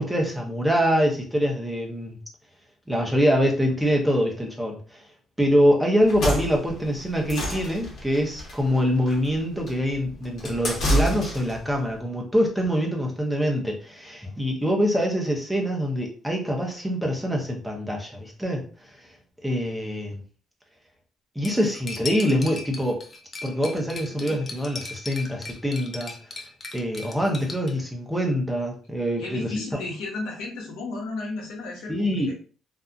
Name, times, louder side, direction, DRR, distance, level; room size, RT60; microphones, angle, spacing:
voice 1, 0.0-2.2 2.9-5.0 5.4-18.6 19.4-20.2 21.4-23.0 23.4-26.1 26.7-29.5 31.9-32.3, equal, 5° right, 0 dB, 0.8 m, -24 dB
sound 1, 6.0-11.7, equal, 55° left, 1.0 m, -29 dB
Cutlery silverware, 21.4-27.7, left 3 dB, 30° left, 0.6 m, -38 dB
voice 2, 29.2-32.3, left 3 dB, 90° left, -1 dB, 0.9 m, -34 dB
2.7 x 2.4 x 2.4 m, 0.39 s
cardioid pair, 95°, 0 cm